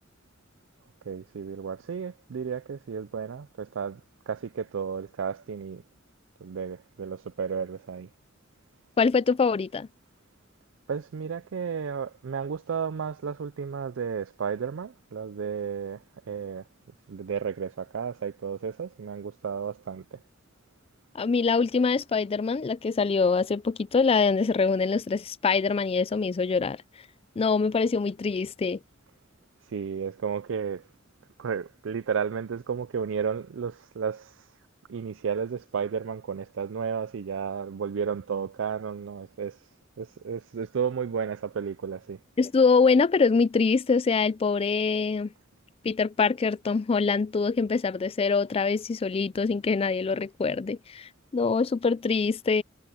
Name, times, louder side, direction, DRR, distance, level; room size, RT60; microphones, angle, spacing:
voice 1, 1.1-4.0 4.3-5.8 6.4-8.1 10.9-16.6 17.1-20.2 29.6-30.9 31.4-34.5 34.9-39.7 40.0-42.2, right 6 dB, 70° right, 0.4 m, -33 dB
voice 2, 9.0-9.9 21.1-26.8 27.4-28.8 42.4-45.3 45.8-52.6, left 4 dB, 30° left, 0.3 m, -24 dB
head